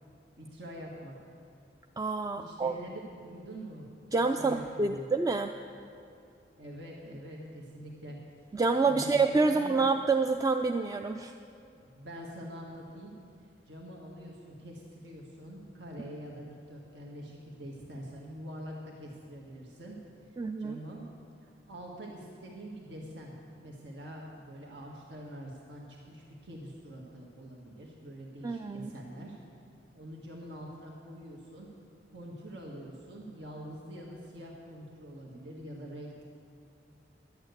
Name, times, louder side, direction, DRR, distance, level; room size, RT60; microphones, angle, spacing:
voice 1, 0.4-1.3 2.4-3.0 3.2-3.9 4.4-5.0 6.6-8.2 8.9-9.2 9.5-9.8 11.9-13.1 13.7-20.0 20.6-21.0 21.4-29.4 29.9-31.7 32.1-36.2, equal, 75° right, -2 dB, 1.7 m, -45 dB
voice 2, 2.0-2.7 4.1-5.5 8.5-11.4 20.4-20.8 28.4-28.9, right 3 dB, 20° right, 6 dB, 0.3 m, -27 dB
11.5 x 8.9 x 8.1 m, 2.6 s
head